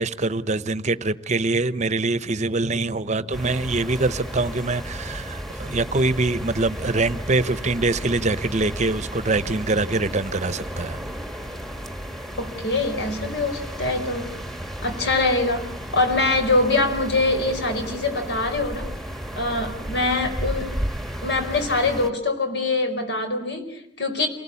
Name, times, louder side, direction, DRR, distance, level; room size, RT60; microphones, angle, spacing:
voice 1, 0.0-11.0, right 3 dB, 40° right, 0.9 m, -24 dB
sound 1, 3.3-22.1, equal, ahead, 1.5 m, -33 dB
voice 2, 12.4-14.3 14.8-15.7 15.9-18.9 19.4-20.7 21.2-24.3, left 2 dB, 65° left, 4.7 m, -23 dB
28.0 x 19.5 x 8.5 m
head